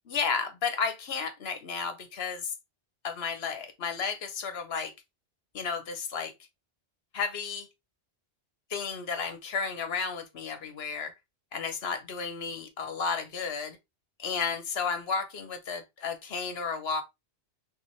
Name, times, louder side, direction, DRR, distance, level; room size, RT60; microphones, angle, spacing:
voice 1, 0.1-2.5 3.0-4.9 5.5-6.3 7.1-7.7 8.7-11.1 11.5-13.8 14.2-17.0, left 5 dB, 65° left, 1.1 m, -32 dB
4.7 x 3.6 x 3.0 m
omnidirectional pair, 1.1 m